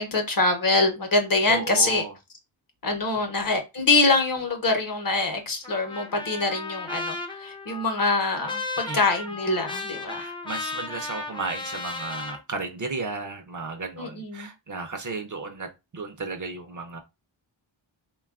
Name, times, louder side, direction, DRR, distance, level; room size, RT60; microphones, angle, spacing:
voice 1, 0.0-2.1 2.8-10.3 14.0-14.5, left 3 dB, 45° left, 0.7 m, -24 dB
voice 2, 1.5-2.1 3.1-3.3 8.8-9.1 10.2-17.0, right 4 dB, 40° right, 0.5 m, -34 dB
Trumpet, 5.6-12.4, left 3 dB, 10° left, 0.4 m, -35 dB
3.3 x 2.3 x 2.3 m
wide cardioid pair, 95°, 47 cm